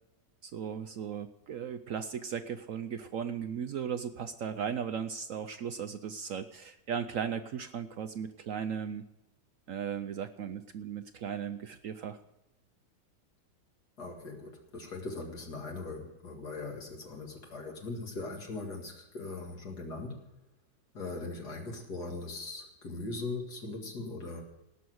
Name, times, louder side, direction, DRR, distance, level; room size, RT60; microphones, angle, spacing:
voice 1, 0.4-9.1 9.7-12.2, right 7 dB, 65° right, 10 dB, 0.8 m, -37 dB
voice 2, 14.0-20.2 20.9-24.4, left 3 dB, 65° left, 1 dB, 2.6 m, -40 dB
18.0 x 6.4 x 7.8 m, 0.99 s
omnidirectional pair, 1.9 m